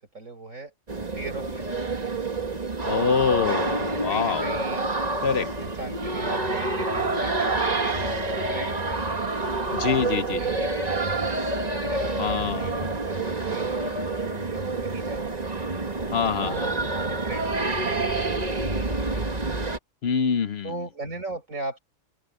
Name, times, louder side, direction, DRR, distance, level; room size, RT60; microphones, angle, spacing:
voice 1, 0.1-0.7 1.1-1.9 4.1-4.9 5.6-9.1 9.8-10.7 11.8-15.4 16.4-19.4 20.6-21.8, right 2 dB, 70° right, 7.2 m, -38 dB
sound 1, 0.9-19.8, right 3 dB, 30° right, 1.8 m, -28 dB
voice 2, 2.8-4.5 5.2-5.5 9.7-10.4 12.2-12.9 16.1-16.7 20.0-20.7, left 6 dB, 55° left, 0.9 m, -25 dB
open air
omnidirectional pair, 1.4 m